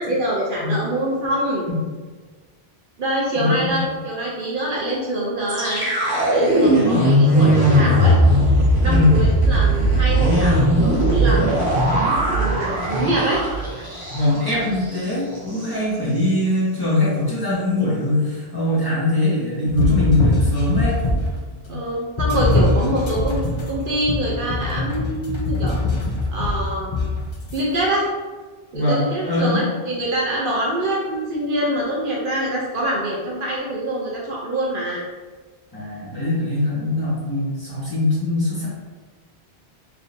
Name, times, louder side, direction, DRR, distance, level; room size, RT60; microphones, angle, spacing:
voice 1, 0.0-1.6 3.0-5.9 6.3-8.2 8.8-11.4 12.3-13.4 21.7-23.4 23.7-25.8 26.3-26.9 27.5-28.1 28.7-35.0, right 1 dB, 60° right, -4 dB, 0.8 m, -25 dB
voice 2, 3.3-3.8 6.7-7.0 8.8-9.1 14.1-21.0 21.7-21.8 28.7-29.7 35.7-38.7, left 2 dB, 20° left, -10 dB, 1.4 m, -21 dB
sound 1, 5.5-14.5 14.8-15.0 15.3-15.7, right 1 dB, 20° right, 1.0 m, -18 dB
sound 2, 19.7-21.4 22.2-27.6, left 2 dB, 45° left, 0.4 m, -22 dB
3.8 x 3.2 x 2.6 m, 1.4 s
omnidirectional pair, 1.1 m